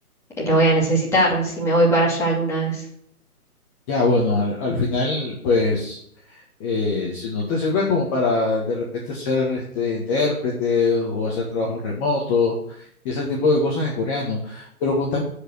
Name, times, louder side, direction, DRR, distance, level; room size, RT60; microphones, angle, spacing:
voice 1, 0.4-2.8, right 1 dB, 5° left, -5 dB, 2.6 m, -19 dB
voice 2, 3.9-6.0 6.6-12.5 13.1-15.2, left 3 dB, 20° left, -3 dB, 1.8 m, -22 dB
13.5 x 5.3 x 6.4 m, 0.67 s
figure-of-eight pair, 140°, 45 cm